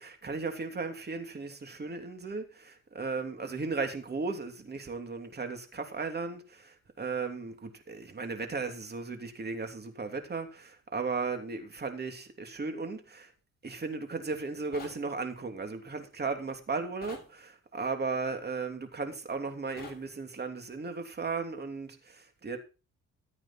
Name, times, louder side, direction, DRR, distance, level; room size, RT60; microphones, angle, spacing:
voice 1, 0.0-13.3 13.6-22.6, right 4 dB, 35° right, 3.1 m, -36 dB
sound 1, 14.7-15.0 17.0-17.3 19.8-20.0, left 3 dB, 30° left, 7.4 m, -45 dB
14.5 x 9.2 x 4.4 m
cardioid pair, 90°, 30 cm